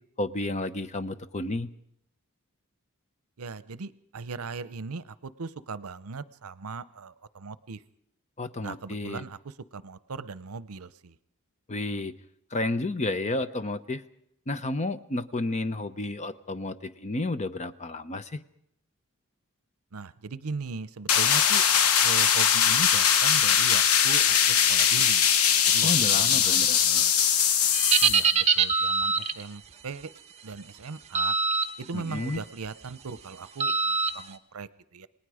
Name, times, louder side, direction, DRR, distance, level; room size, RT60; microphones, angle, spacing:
voice 1, 0.2-1.7 8.4-9.3 11.7-12.1 12.5-14.0 14.5-18.4 25.8-27.0 31.9-32.4, left 2 dB, 30° left, 13 dB, 0.7 m, -31 dB
voice 2, 3.4-7.8 8.6-11.1 19.9-21.6 22.0-25.2 25.7-25.9 26.2-27.1 28.0-30.1 30.4-31.3 31.8-35.1, right 4 dB, 75° right, 16 dB, 0.7 m, -39 dB
sound 1, 21.1-28.3, left 8 dB, 80° left, 0.9 m, -21 dB
sound 2, 27.7-29.4 31.1-31.7 32.1-32.4 33.6-34.1, right 5 dB, 30° right, 1.2 m, -23 dB
28.0 x 19.5 x 5.0 m, 0.74 s
head